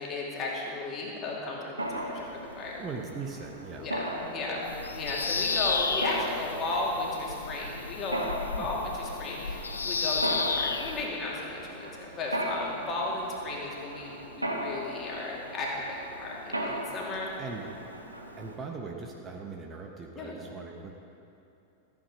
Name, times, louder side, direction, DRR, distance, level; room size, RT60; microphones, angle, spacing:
voice 1, 0.0-2.7 3.8-17.3 20.1-20.4, left 2 dB, 30° left, -3 dB, 2.7 m, -35 dB
Mechanisms, 1.8-18.6, equal, 85° right, 1.1 m, -38 dB
voice 2, 2.8-3.9 8.5-8.9 17.4-17.7 18.4-20.9, right 4 dB, 25° right, 1 dB, 1.0 m, -40 dB
Bird vocalization bird call bird song, 4.6-11.1, left 4 dB, 75° left, 0.6 m, -32 dB
14.0 x 9.0 x 5.1 m, 2.8 s
figure-of-eight pair, 90°, 0 cm